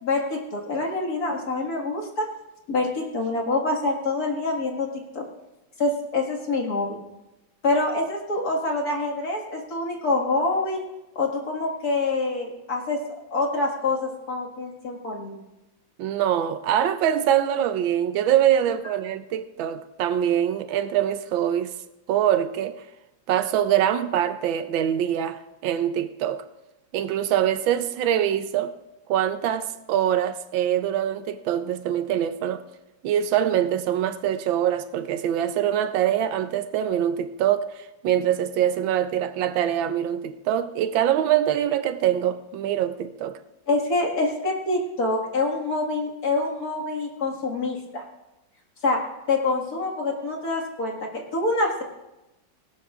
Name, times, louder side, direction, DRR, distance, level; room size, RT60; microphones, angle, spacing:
voice 1, 0.0-2.3 2.7-4.9 5.1-5.2 5.8-7.0 7.6-10.8 11.2-13.0 13.3-15.3 43.7-48.0 48.8-49.0 49.3-51.8, left 2 dB, 50° left, 2.3 m, -26 dB
voice 2, 16.0-21.8 22.1-22.8 23.3-26.4 26.9-28.7 29.1-32.6 33.0-43.4, right 10 dB, 90° right, 1.4 m, -24 dB
18.5 x 17.0 x 2.4 m
omnidirectional pair, 2.1 m